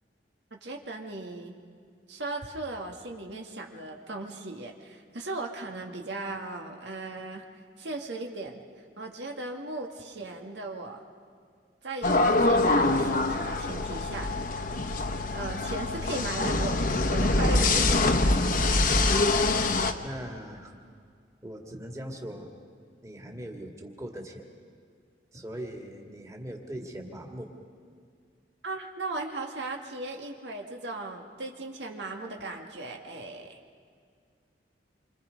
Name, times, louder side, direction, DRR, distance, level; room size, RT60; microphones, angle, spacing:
voice 1, 0.5-1.5 2.1-7.4 7.8-8.6 9.0-11.0 11.8-14.3 15.3-18.3 18.6-18.8 28.6-33.6, right 2 dB, 85° right, 2 dB, 2.0 m, -37 dB
sound 1, 12.0-19.9, left 2 dB, 55° left, 1.1 m, -24 dB
voice 2, 20.0-20.7 21.4-22.5 23.0-24.5 25.3-27.5, equal, 20° right, 1 dB, 2.2 m, -40 dB
27.5 x 25.5 x 5.3 m, 2.1 s
head